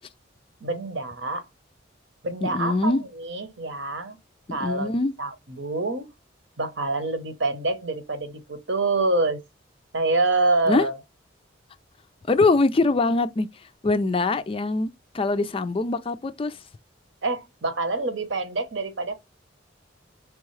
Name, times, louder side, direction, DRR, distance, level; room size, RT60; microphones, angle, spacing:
voice 1, 0.6-1.5 2.2-4.2 4.5-6.1 6.6-9.4 9.9-11.0 17.2-19.1, right 2 dB, 70° right, 1.0 m, -26 dB
voice 2, 2.4-3.0 4.5-5.1 10.7-10.9 12.3-13.5 13.8-14.9 15.1-16.6, left 3 dB, 30° left, 0.4 m, -23 dB
4.7 x 3.5 x 3.2 m
head